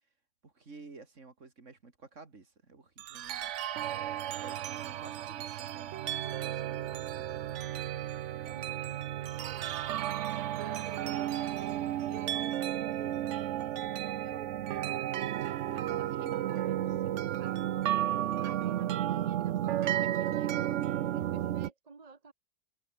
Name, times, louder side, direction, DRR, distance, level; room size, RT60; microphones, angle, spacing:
voice 1, 0.4-3.5 4.2-7.3 21.1-21.5, right 3 dB, 45° right, 3.0 m, -53 dB
sound 1, 3.0-21.7, right 12 dB, 65° right, 0.7 m, -33 dB
voice 2, 8.4-9.7 10.5-11.2 12.1-13.4 13.8-14.5 15.7-22.3, right 4 dB, 25° right, 1.0 m, -52 dB
omnidirectional pair, 1.9 m